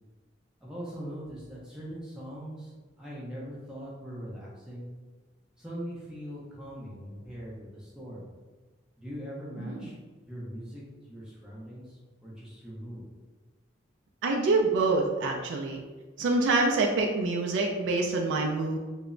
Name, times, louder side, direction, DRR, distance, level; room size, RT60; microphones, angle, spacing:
voice 1, 0.6-2.7 3.0-4.9 5.6-8.2 9.0-9.9 10.3-10.8 11.1-11.8 12.2-13.0, equal, 5° right, -7 dB, 0.5 m, -41 dB
voice 2, 9.6-9.9 14.2-15.8 16.2-18.8, right 3 dB, 75° right, 0 dB, 0.3 m, -26 dB
2.1 x 2.0 x 3.6 m, 1.3 s
head